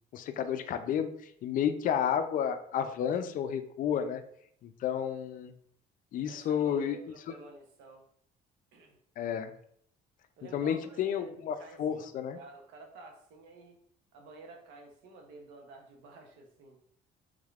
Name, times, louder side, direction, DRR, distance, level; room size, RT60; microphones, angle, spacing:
voice 1, 0.1-4.2 4.6-5.5 6.1-7.0 9.2-9.5 10.5-12.4, left 8 dB, 55° left, 9 dB, 0.4 m, -31 dB
voice 2, 6.3-8.0 8.7-9.0 10.4-11.2 11.6-12.1 12.3-13.8 14.1-16.8, right 3 dB, 90° right, 2 dB, 0.8 m, -51 dB
3.6 x 3.2 x 2.4 m, 0.66 s
cardioid pair, 110°, 17 cm